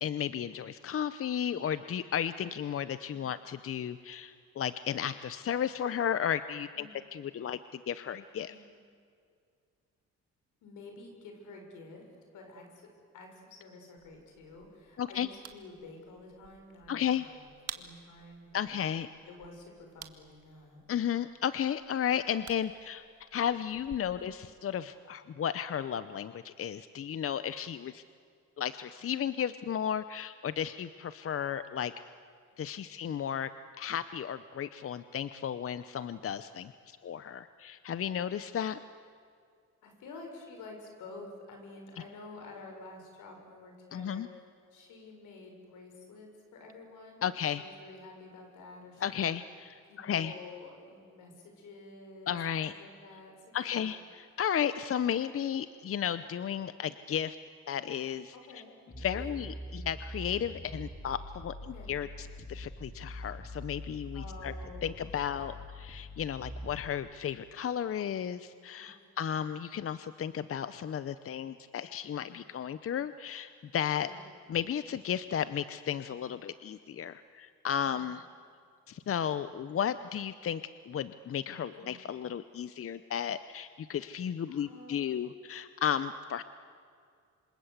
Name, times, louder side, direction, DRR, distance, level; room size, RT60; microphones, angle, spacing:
voice 1, 0.0-8.5 15.0-15.3 16.9-17.3 18.5-19.1 20.9-28.0 28.6-31.9 32.6-33.5 33.8-38.8 43.9-44.3 47.2-47.6 49.0-50.3 52.3-52.7 53.5-57.4 57.7-58.6 59.0-64.5 64.8-74.1 74.5-78.2 78.9-86.4, left 9 dB, 50° left, 13 dB, 0.8 m, -34 dB
voice 2, 10.6-12.1 12.3-12.9 13.1-17.5 17.7-18.7 19.3-20.8 24.1-24.3 39.8-44.2 44.7-49.4 49.8-52.4 52.6-53.9 58.3-58.7 59.1-59.4 61.7-62.0 64.1-65.0 68.7-69.2 72.3-72.5 74.0-74.2 77.8-78.0 81.7-82.0 84.5-85.3, left 3 dB, 85° left, 3 dB, 6.6 m, -50 dB
sound 1, 14.0-24.0, right 8 dB, 55° right, 1.9 m, -52 dB
sound 2, 58.9-66.9, equal, 15° left, 3.0 m, -44 dB
27.0 x 26.5 x 8.3 m, 2.2 s
cardioid pair, 90°, 30 cm